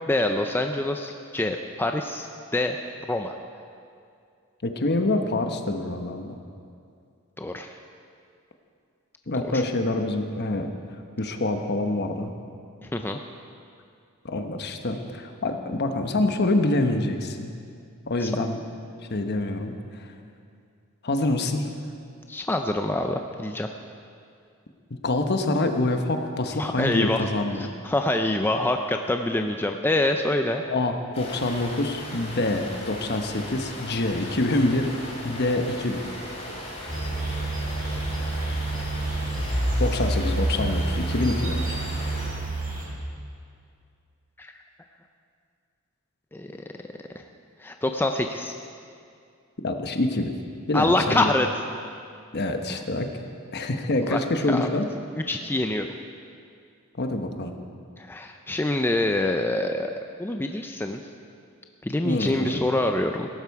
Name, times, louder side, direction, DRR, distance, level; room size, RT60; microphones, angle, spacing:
voice 1, 0.1-2.3 2.5-2.8 3.1-3.4 7.4-7.7 9.4-9.6 12.8-13.2 18.2-18.3 22.3-23.7 26.6-27.3 27.6-30.6 44.4-44.5 46.3-46.6 47.1-47.2 47.6-48.6 50.7-51.5 52.7-52.8 54.1-54.2 54.5-54.7 55.3-55.9 58.0-59.9 60.2-61.0 61.8-63.3, left 1 dB, 10° left, 5 dB, 0.4 m, -25 dB
voice 2, 4.6-6.3 9.3-10.7 11.2-12.3 14.2-17.5 18.1-18.6 19.1-19.7 20.0-20.1 21.0-21.7 25.0-27.7 30.7-34.9 35.2-36.0 39.8-41.8 49.6-50.3 50.7-51.3 52.3-53.1 53.5-54.9 57.0-57.5 62.0-62.6, left 2 dB, 50° left, 6 dB, 1.0 m, -26 dB
sound 1, 31.1-42.3, left 1 dB, 30° left, 3.3 m, -38 dB
sound 2, 36.9-42.8, right 1 dB, 40° right, 3.3 m, -27 dB
17.0 x 12.5 x 4.7 m, 2.4 s
head